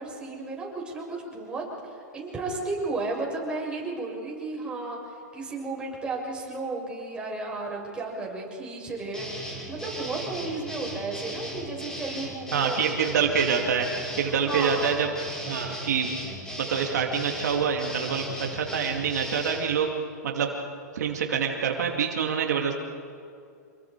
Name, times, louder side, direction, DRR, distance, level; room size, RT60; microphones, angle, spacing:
voice 1, 0.0-12.9 14.3-15.1, right 3 dB, 10° right, -3 dB, 6.9 m, -34 dB
sound 1, 9.1-19.6, equal, 5° left, 6.3 m, -37 dB
voice 2, 12.5-13.9 14.2-15.1 15.5-16.1 16.6-18.3 18.5-19.9 20.2-20.5 20.9-22.8, right 6 dB, 75° right, 2 dB, 2.6 m, -26 dB
28.0 x 21.5 x 4.9 m, 2.4 s
hypercardioid pair, 125°, 9 cm